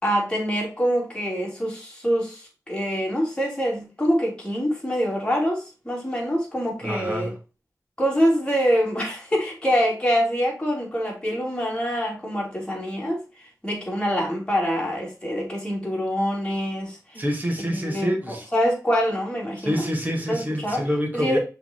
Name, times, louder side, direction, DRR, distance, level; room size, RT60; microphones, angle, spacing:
voice 1, 0.0-7.3 8.0-13.2 13.6-17.2 17.7-19.8 20.3-20.8 21.1-21.4, equal, 15° left, 3.1 m, -25 dB
voice 2, 6.8-7.3 17.1-18.5 19.6-21.4, equal, 30° right, 2.1 m, -27 dB
5.7 x 3.9 x 4.4 m
wide cardioid pair, 85°, 6 cm